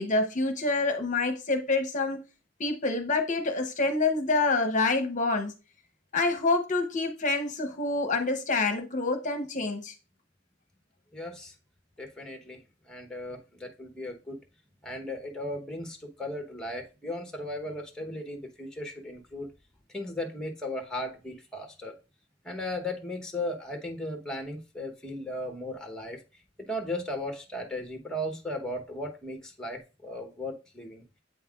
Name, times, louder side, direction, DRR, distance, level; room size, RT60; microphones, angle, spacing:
voice 1, 0.0-2.2 2.6-5.5 6.1-9.9, left 3 dB, 40° left, 0.8 m, -27 dB
voice 2, 11.1-11.5 12.0-12.6 12.9-14.4 14.8-19.5 19.9-22.0 22.4-26.2 26.6-31.0, left 1 dB, 5° left, 1.0 m, -36 dB
8.1 x 5.5 x 2.4 m
head